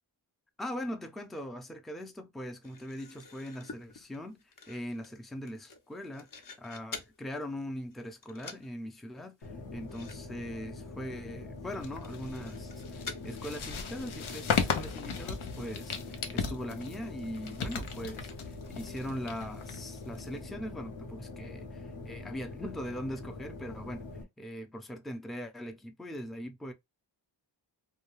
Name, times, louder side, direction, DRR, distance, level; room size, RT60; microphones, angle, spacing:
voice 1, 0.6-24.0 24.4-26.7, equal, ahead, 0.5 m, -41 dB
floppydrive insert feedout, 2.6-7.2 7.6-8.0 8.2-8.7 9.0-9.1 9.4-9.5 9.8-10.2 10.4-10.6 11.0-11.1 11.8-13.2, left 4 dB, 45° left, 0.7 m, -47 dB
sound 1, 9.4-24.2, left 3 dB, 65° left, 1.0 m, -44 dB
sound 2, 11.7-20.4, left 6 dB, 85° left, 0.6 m, -36 dB
2.3 x 2.2 x 2.9 m
wide cardioid pair, 50°, 48 cm